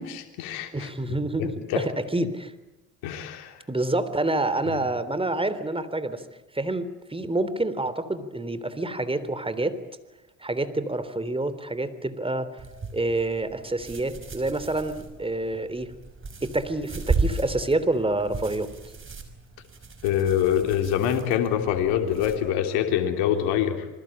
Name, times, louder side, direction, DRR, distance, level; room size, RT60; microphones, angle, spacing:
voice 1, 0.0-0.9 1.7-1.8 3.0-3.6 4.7-4.8 20.0-23.9, left 10 dB, 75° left, 4 dB, 3.3 m, -25 dB
voice 2, 0.7-2.5 3.7-6.2 6.5-9.8 10.4-12.6 12.9-15.9 16.4-18.7, right 2 dB, 15° right, 13 dB, 3.4 m, -27 dB
sound 1, 12.6-22.4, right 4 dB, 35° right, 5.4 m, -34 dB
27.0 x 22.0 x 8.9 m, 1.1 s
hypercardioid pair, 60°, 38 cm